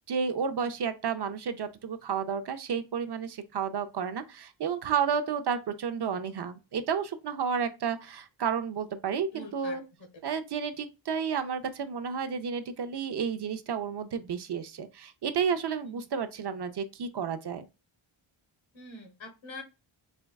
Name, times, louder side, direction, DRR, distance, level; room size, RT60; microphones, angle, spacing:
voice 1, 0.1-9.8 10.2-17.7, right 6 dB, 55° right, 0.5 m, -31 dB
voice 2, 9.3-9.8 15.8-16.0 18.7-19.6, left 2 dB, 65° left, 1.1 m, -44 dB
4.3 x 2.2 x 2.2 m
wide cardioid pair, 105°, 49 cm